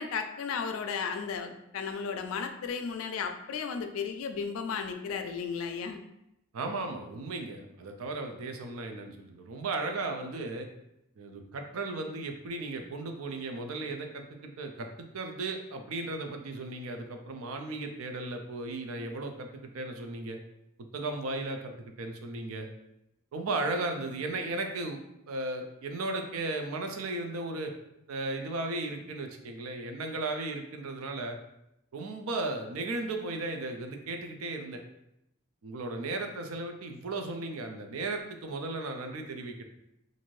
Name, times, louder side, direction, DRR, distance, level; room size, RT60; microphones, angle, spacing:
voice 1, 0.0-6.0, left 6 dB, 75° left, 7 dB, 0.4 m, -34 dB
voice 2, 6.5-10.7 11.2-20.4 20.9-22.7 23.3-25.0 25.3-27.7 28.1-31.4 31.9-34.8 35.6-39.6, right 2 dB, 90° right, 5 dB, 0.4 m, -35 dB
2.6 x 2.5 x 3.1 m, 0.83 s
head